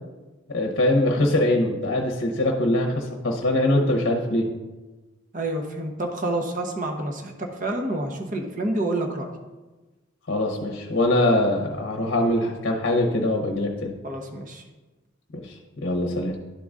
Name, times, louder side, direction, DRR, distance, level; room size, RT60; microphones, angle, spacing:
voice 1, 0.5-4.5 10.3-13.9 15.3-16.4, left 1 dB, 55° left, 1 dB, 0.8 m, -23 dB
voice 2, 5.3-7.3 7.6-9.3 14.0-14.6, right 1 dB, 40° right, 3 dB, 0.9 m, -28 dB
11.5 x 3.8 x 3.6 m, 1.2 s
head